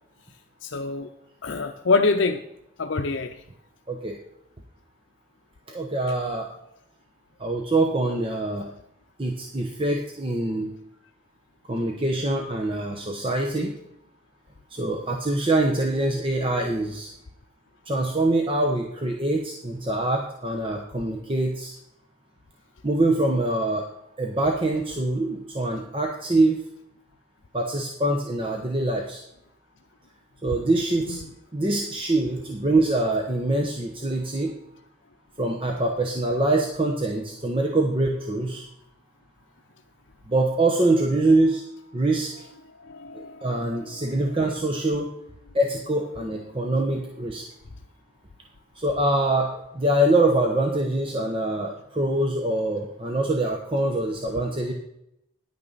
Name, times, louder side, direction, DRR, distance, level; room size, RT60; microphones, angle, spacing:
voice 1, 0.6-1.1 1.4-2.4 2.8-3.4 31.1-31.3 42.8-44.1, left 3 dB, 75° left, 5 dB, 0.7 m, -26 dB
voice 2, 5.7-6.5 7.4-8.7 9.2-10.7 11.7-13.7 14.7-17.1 17.9-21.7 22.8-23.9 24.2-26.6 27.5-29.2 30.4-31.2 31.5-34.5 35.4-38.6 40.3-41.6 41.9-42.3 43.2-45.1 45.5-47.4 48.8-49.5 49.7-54.7, right 2 dB, 30° right, 1 dB, 1.0 m, -24 dB
10.5 x 9.0 x 4.1 m, 0.79 s
head